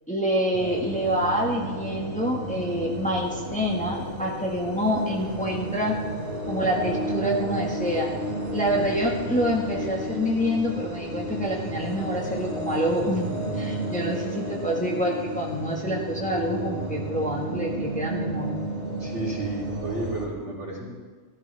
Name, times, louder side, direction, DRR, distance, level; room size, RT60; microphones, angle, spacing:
voice 1, 0.1-6.0 6.5-8.2 8.5-18.5, equal, 5° left, -2 dB, 1.6 m, -27 dB
sound 1, 0.5-20.3, right 1 dB, 35° right, 3.1 m, -32 dB
voice 2, 19.0-20.9, right 2 dB, 70° right, -5 dB, 3.6 m, -32 dB
15.0 x 14.0 x 3.5 m, 1.5 s
omnidirectional pair, 1.2 m